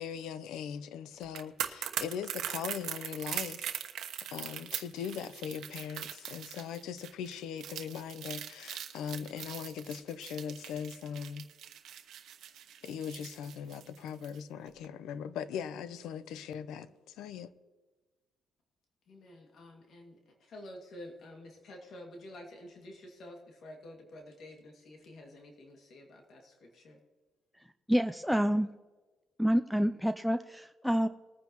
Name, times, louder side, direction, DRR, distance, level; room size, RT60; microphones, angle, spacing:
voice 1, 0.0-3.8 4.3-11.5 12.8-17.5, left 8 dB, 90° left, 0.7 m, -40 dB
sound 1, 1.2-14.4 14.7-14.8, right 10 dB, 75° right, 1.1 m, -41 dB
voice 2, 19.1-27.0, left 1 dB, 65° left, 2.2 m, -50 dB
voice 3, 27.9-28.7 29.4-31.1, equal, ahead, 0.5 m, -28 dB
21.0 x 9.4 x 3.0 m
cardioid pair, 90°, 0 cm